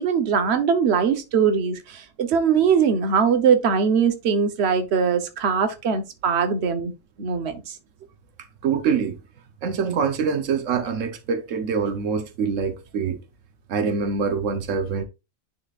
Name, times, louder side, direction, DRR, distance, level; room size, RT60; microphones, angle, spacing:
voice 1, 0.0-6.9 7.2-7.8, right 6 dB, 60° right, 1.2 m, -21 dB
voice 2, 8.6-9.2 9.6-13.2 13.7-15.0, right 6 dB, 85° right, 1.2 m, -25 dB
9.9 x 4.3 x 2.4 m
omnidirectional pair, 1.3 m